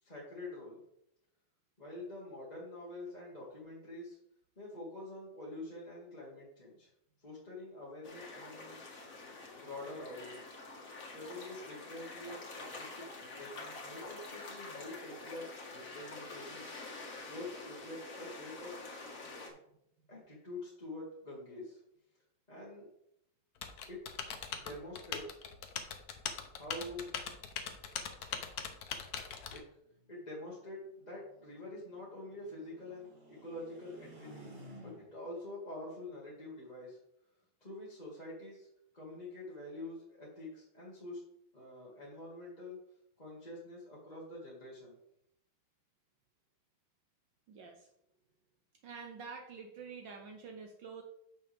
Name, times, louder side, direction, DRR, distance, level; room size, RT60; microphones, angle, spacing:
voice 1, 0.0-0.8 1.8-4.2 4.5-6.9 7.2-8.8 9.6-10.4 11.1-18.8 20.1-21.8 22.5-22.9 23.9-24.0 24.6-25.2 26.6-27.1 29.5-29.6 30.1-34.5 34.8-37.0 37.6-38.7 38.9-41.2 41.5-42.8 43.2-45.0, left 2 dB, 20° left, -6 dB, 1.5 m, -46 dB
sound 1, 8.0-19.5, left 3 dB, 45° left, 1.9 m, -47 dB
Typing, 23.6-29.6, left 7 dB, 60° left, 1.1 m, -41 dB
sound 2, 29.8-35.3, equal, 25° right, 1.3 m, -56 dB
voice 2, 47.5-47.9 48.8-51.0, right 5 dB, 70° right, 3 dB, 1.4 m, -47 dB
8.9 x 6.4 x 3.4 m, 0.78 s
omnidirectional pair, 2.2 m